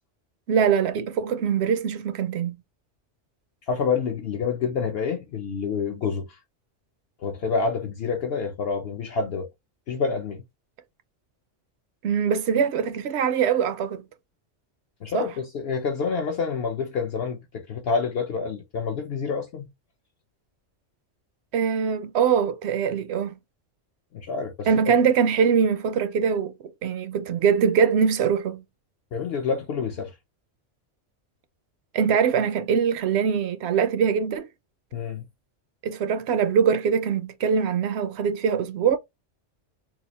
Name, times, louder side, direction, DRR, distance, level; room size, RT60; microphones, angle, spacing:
voice 1, 0.5-2.6 12.0-14.0 15.1-15.3 21.5-23.3 24.7-26.5 26.8-28.6 31.9-34.5 35.8-39.0, right 7 dB, 70° right, 0.8 m, -22 dB
voice 2, 3.7-6.3 7.2-9.5 9.9-10.4 15.0-19.7 24.1-24.7 29.1-30.1 34.9-35.2, left 5 dB, 60° left, 0.8 m, -28 dB
4.0 x 2.4 x 2.9 m
omnidirectional pair, 1.2 m